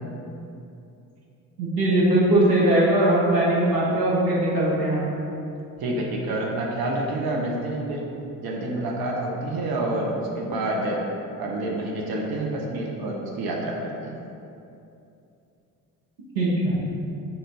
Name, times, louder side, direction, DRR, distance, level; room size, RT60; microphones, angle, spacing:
voice 1, 1.6-5.1 16.3-16.8, right 1 dB, 85° right, -6 dB, 1.1 m, -20 dB
voice 2, 5.8-8.0 8.4-11.0 11.4-14.2, right 1 dB, 50° right, -1 dB, 1.1 m, -28 dB
6.0 x 3.9 x 5.4 m, 2.7 s
figure-of-eight pair, 50°, 48 cm